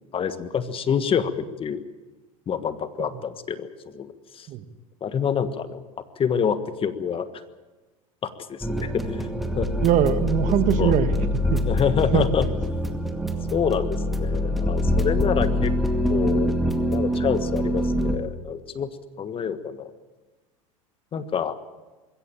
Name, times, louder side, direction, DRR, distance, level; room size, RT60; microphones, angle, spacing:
voice 1, 0.1-1.8 2.5-4.5 5.0-5.8 6.2-7.3 8.2-9.3 9.6-9.7 10.6-10.9 11.6-12.5 13.5-15.7 16.1-16.5 16.9-18.9 19.2-19.9 21.1-21.6, left 7 dB, 30° left, 11 dB, 1.5 m, -27 dB
sound 1, 8.6-18.2, left 1 dB, ahead, 2.1 m, -24 dB
voice 2, 9.8-11.6 12.1-12.3, right 10 dB, 45° right, 10 dB, 1.7 m, -22 dB
21.5 x 16.5 x 8.9 m, 1.2 s
hypercardioid pair, 95°, 17 cm